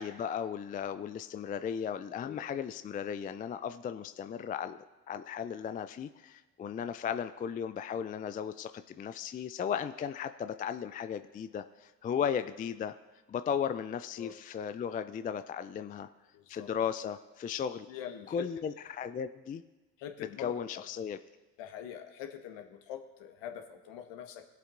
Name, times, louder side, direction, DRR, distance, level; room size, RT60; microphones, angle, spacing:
voice 1, 0.0-13.0 13.3-16.1 16.5-17.9 18.3-19.6 20.4-21.2, left 8 dB, 20° left, 11 dB, 0.4 m, -36 dB
voice 2, 16.3-16.7 17.9-18.4 20.0-20.8 21.6-24.5, left 9 dB, 60° left, 5 dB, 1.5 m, -44 dB
20.5 x 8.2 x 2.6 m, 1.2 s
figure-of-eight pair, 55°, 50 cm